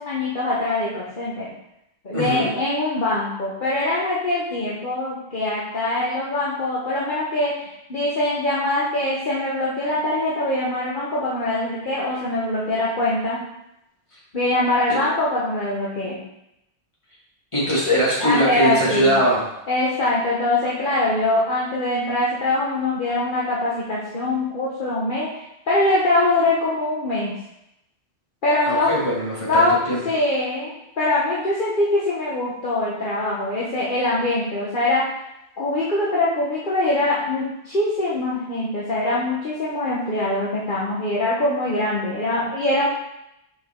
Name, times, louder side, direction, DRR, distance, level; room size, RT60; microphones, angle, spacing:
voice 1, 0.0-1.5 2.0-13.4 14.3-16.2 18.2-19.1 19.7-25.3 25.7-27.3 28.4-28.9 29.4-29.7 30.0-35.1 35.6-42.9, left 2 dB, 50° left, -7 dB, 1.4 m, -23 dB
voice 2, 2.1-2.5 14.9-15.0 17.5-19.4 28.7-30.0, equal, 30° left, -7 dB, 2.4 m, -21 dB
6.6 x 5.5 x 3.8 m, 0.83 s
omnidirectional pair, 1.1 m